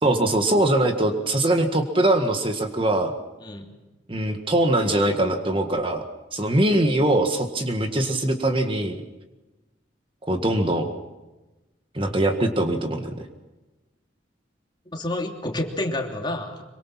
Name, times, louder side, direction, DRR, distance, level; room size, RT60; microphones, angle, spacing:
voice 1, 0.0-3.1 4.1-6.0 6.3-9.0 10.3-10.9 11.9-13.1, right 1 dB, 30° right, 5 dB, 1.8 m, -22 dB
voice 2, 3.4-3.7 7.9-8.0 14.9-16.6, left 1 dB, 25° left, 2 dB, 3.1 m, -29 dB
26.0 x 24.5 x 5.9 m, 1.1 s
head